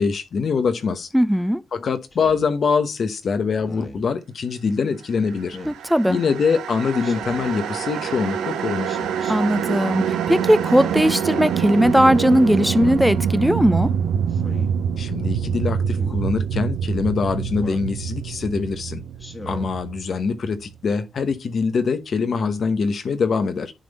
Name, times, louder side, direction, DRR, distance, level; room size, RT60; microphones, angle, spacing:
voice 1, 0.0-1.1 1.7-5.6 6.1-9.0 15.0-19.0 19.5-23.7, left 5 dB, 60° left, 1.0 m, -24 dB
voice 2, 1.1-1.6 5.7-6.2 9.3-13.9, equal, ahead, 0.7 m, -18 dB
Speech synthesizer, 2.1-2.5 3.6-4.1 5.5-5.8 7.0-7.5 8.8-9.3 10.6-11.2 12.5-13.0 14.3-14.7 15.9-16.2 17.5-17.9 19.2-19.7, left 2 dB, 35° left, 1.7 m, -39 dB
sound 1, 5.5-20.7, right 8 dB, 80° right, 0.6 m, -26 dB
sound 2, 6.3-14.1, right 4 dB, 55° right, 1.1 m, -40 dB
10.5 x 3.4 x 4.2 m
hypercardioid pair, 45°, 0 cm